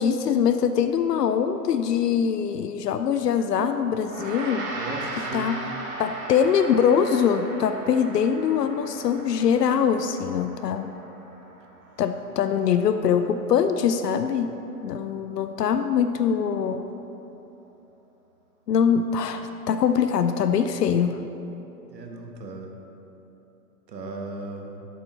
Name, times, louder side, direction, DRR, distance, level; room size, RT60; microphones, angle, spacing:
voice 1, 0.0-4.7 5.3-5.6 6.0-10.9 12.0-14.5 14.8-16.8 18.7-21.2, left 7 dB, 75° left, 9 dB, 0.6 m, -23 dB
Gong, 4.0-13.6, right 2 dB, 55° right, 1.9 m, -38 dB
voice 2, 4.7-5.6 21.9-22.7 23.9-24.8, right 3 dB, 85° right, 2 dB, 1.4 m, -36 dB
10.5 x 7.2 x 4.0 m, 3.0 s
hypercardioid pair, 125°, 49 cm